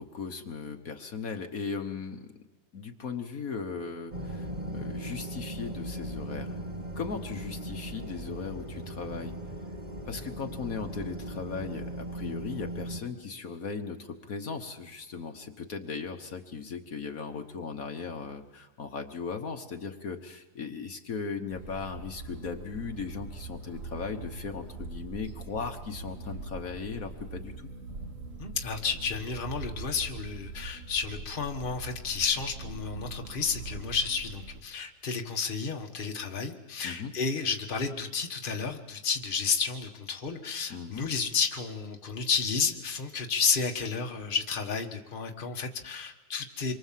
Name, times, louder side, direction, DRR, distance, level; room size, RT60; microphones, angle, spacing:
voice 1, 0.0-2.3 2.7-6.6 7.0-9.3 10.1-27.7 36.8-37.1 40.7-41.0, left 5 dB, 65° left, 5 dB, 1.7 m, -37 dB
sound 1, 4.1-13.0, right 1 dB, 25° right, 1.9 m, -38 dB
sound 2, 21.5-34.6, right 3 dB, 55° right, 2.1 m, -42 dB
voice 2, 28.4-46.7, left 5 dB, 35° left, 3 dB, 1.6 m, -31 dB
27.0 x 23.5 x 7.5 m, 1.1 s
omnidirectional pair, 1.7 m